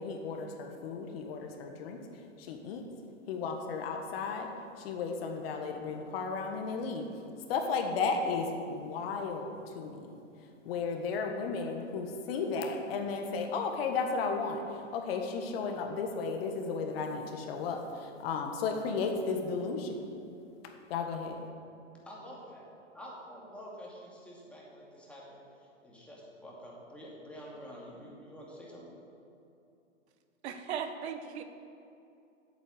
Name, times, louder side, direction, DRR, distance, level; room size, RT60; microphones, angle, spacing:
voice 1, 0.0-2.0 2.4-2.8 3.3-4.5 4.8-7.0 7.5-10.1 10.6-20.0 20.9-21.4, left 4 dB, 50° left, 4 dB, 1.5 m, -34 dB
voice 2, 22.1-22.7 22.9-25.4 25.8-29.0, equal, 5° left, -5 dB, 2.3 m, -48 dB
voice 3, 30.4-31.4, right 7 dB, 60° right, 8 dB, 1.0 m, -37 dB
8.5 x 8.2 x 7.8 m, 2.7 s
hypercardioid pair, 135°, 38 cm